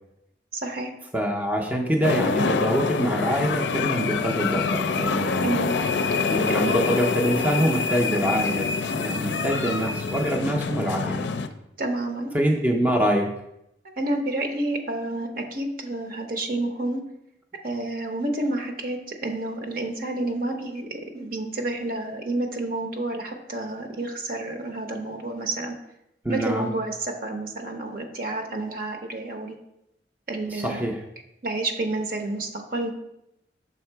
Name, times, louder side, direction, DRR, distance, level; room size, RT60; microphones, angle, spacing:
voice 1, 0.5-0.9 5.4-5.7 11.8-12.3 14.0-17.0 17.6-25.8 26.3-29.6 30.3-30.9 31.4-32.9, right 2 dB, 55° right, 4 dB, 0.8 m, -29 dB
voice 2, 1.1-5.5 6.3-11.2 12.3-13.3 26.2-26.7 30.5-31.0, equal, 10° right, 1 dB, 0.5 m, -25 dB
sound 1, 2.0-11.5, left 4 dB, 75° left, 0.4 m, -26 dB
6.3 x 3.7 x 4.5 m, 0.83 s
head